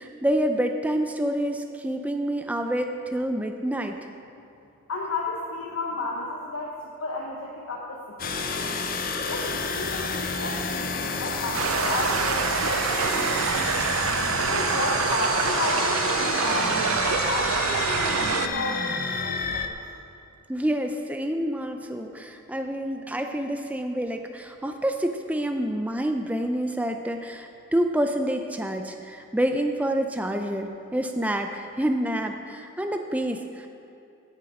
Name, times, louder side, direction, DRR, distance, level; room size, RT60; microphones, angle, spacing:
voice 1, 0.0-4.0 20.5-33.7, right 1 dB, 5° right, 5 dB, 0.4 m, -27 dB
voice 2, 4.9-8.0 8.4-8.7 9.2-13.8 14.5-19.6, left 2 dB, 85° left, -2 dB, 1.1 m, -32 dB
sound 1, 8.2-19.7, left 4 dB, 40° left, 0.6 m, -29 dB
sound 2, 11.5-18.5, right 7 dB, 80° right, 0.5 m, -26 dB
16.5 x 7.3 x 5.0 m, 2.7 s
head